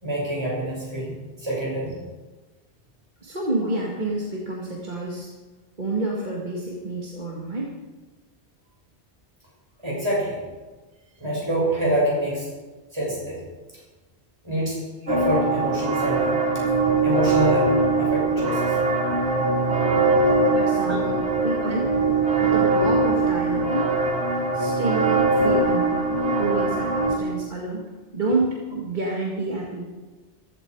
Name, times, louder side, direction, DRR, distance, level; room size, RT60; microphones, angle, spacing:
voice 1, 0.0-2.0 9.8-10.4 11.2-12.5 12.9-13.4 14.4-14.8 15.1-16.4 17.0-17.7 18.0-18.8 20.8-21.0, equal, 25° right, -5 dB, 6.4 m, -26 dB
voice 2, 3.2-5.3 5.8-7.7 20.5-21.9 22.4-23.9 24.5-26.1 26.4-29.9, right 2 dB, 45° right, -4 dB, 2.3 m, -28 dB
sound 1, 15.1-27.1, right 3 dB, 80° right, 2.7 m, -22 dB
15.5 x 15.0 x 4.8 m, 1.3 s
omnidirectional pair, 1.1 m